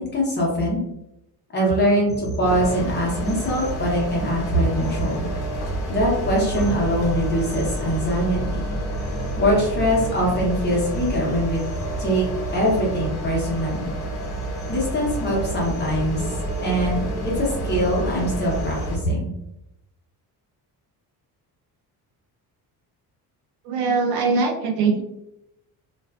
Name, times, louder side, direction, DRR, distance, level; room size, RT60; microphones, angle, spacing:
voice 1, 0.1-0.8 1.5-5.3 5.9-8.6 9.4-11.6 12.0-12.2 12.5-13.9 14.7-19.3, equal, 25° left, -3 dB, 0.8 m, -23 dB
sound 1, 2.1-18.9, equal, 10° left, 0.3 m, -40 dB
sound 2, 2.4-19.0, right 1 dB, 75° left, 0.8 m, -28 dB
voice 2, 23.6-25.0, right 4 dB, 70° right, 2 dB, 0.6 m, -21 dB
2.4 x 2.2 x 2.3 m, 0.86 s
cardioid pair, 165°, 38 cm